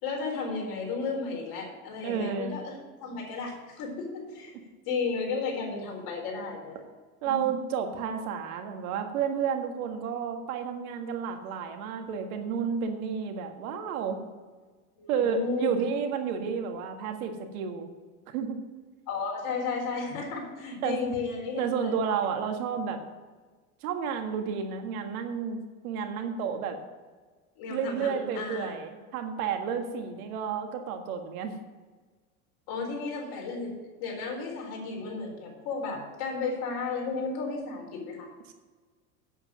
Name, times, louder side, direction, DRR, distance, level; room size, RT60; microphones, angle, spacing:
voice 1, 0.0-4.5 4.9-6.8 7.2-7.5 15.0-15.8 19.1-21.9 27.6-28.7 32.7-38.3, left 4 dB, 55° left, 0 dB, 4.2 m, -33 dB
voice 2, 2.0-2.5 7.2-14.2 15.1-17.9 18.3-18.6 20.8-21.0 21.6-23.0 23.8-26.8 27.7-31.5 38.5-38.6, right 7 dB, 75° right, 5 dB, 1.8 m, -31 dB
8.1 x 8.1 x 7.4 m, 1.4 s
hypercardioid pair, 95°, 43 cm